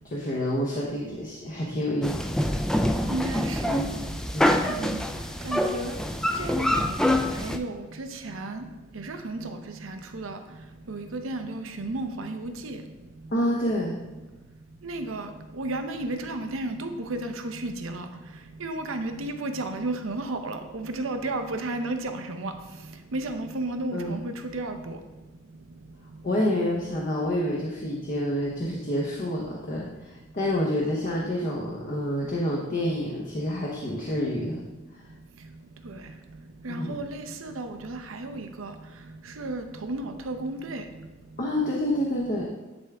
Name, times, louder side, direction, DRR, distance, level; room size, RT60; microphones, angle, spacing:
voice 1, 0.1-2.5 4.3-4.7 13.3-14.0 23.9-24.1 26.2-34.6 36.7-37.0 41.4-42.5, left 1 dB, 45° left, -3 dB, 0.9 m, -28 dB
sound 1, 2.0-7.6, left 1 dB, 5° left, 0.3 m, -26 dB
voice 2, 3.1-3.8 4.5-5.0 5.4-6.0 6.4-7.0 7.4-8.6 8.9-9.4 9.8-10.4 10.9-12.8 14.8-15.3 15.6-18.0 18.6-22.5 23.1-25.0 36.6-38.7 39.4-40.8, right 2 dB, 85° right, 7 dB, 0.7 m, -33 dB
10.5 x 3.5 x 3.4 m, 1.1 s
head